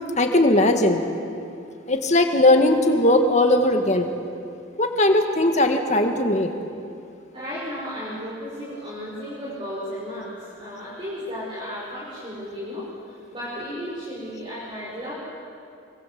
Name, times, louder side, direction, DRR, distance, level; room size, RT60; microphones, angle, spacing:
voice 1, 0.2-1.0 1.9-4.1 4.8-6.5, left 1 dB, 35° left, 5 dB, 2.0 m, -18 dB
voice 2, 7.3-15.1, equal, 25° right, -8 dB, 5.7 m, -34 dB
25.5 x 24.5 x 7.8 m, 2.5 s
head